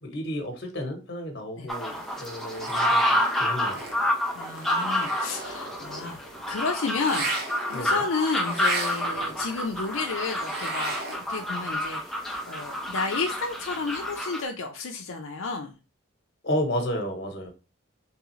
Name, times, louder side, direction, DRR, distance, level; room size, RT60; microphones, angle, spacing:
voice 1, 0.0-3.8 7.7-8.0 16.4-17.5, equal, 50° left, 4 dB, 1.0 m, -32 dB
sound 1, 1.7-14.4, left 1 dB, ahead, 0.4 m, -29 dB
sound 2, 1.9-11.5 11.7-14.2, right 3 dB, 50° right, 0.9 m, -37 dB
voice 2, 4.3-7.4 7.7-11.0 11.3-15.8, left 4 dB, 75° left, 2 dB, 0.5 m, -31 dB
3.6 x 3.3 x 3.0 m, 0.31 s
head